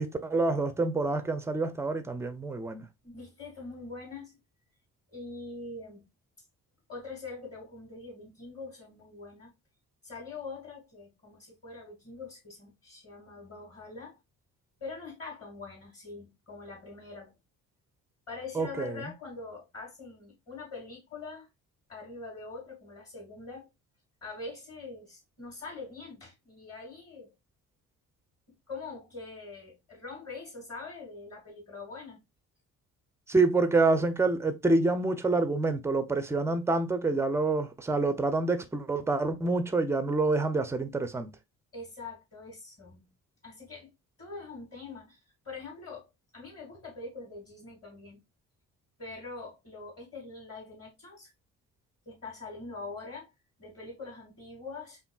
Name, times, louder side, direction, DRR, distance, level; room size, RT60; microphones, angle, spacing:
voice 1, 0.0-2.9 18.5-19.0 33.3-41.3, right 3 dB, 5° right, 0.5 m, -27 dB
voice 2, 3.0-4.4 5.1-6.1 6.9-9.5 10.0-14.2 14.8-17.3 18.3-21.5 21.9-23.7 24.2-27.3 28.7-32.2 41.7-43.1 43.4-43.9 44.2-45.2 45.4-46.1 46.3-48.2 49.0-51.3 52.1-53.3 53.6-55.0, left 3 dB, 30° left, 2.2 m, -43 dB
5.0 x 2.6 x 2.3 m
figure-of-eight pair, 45°, 44 cm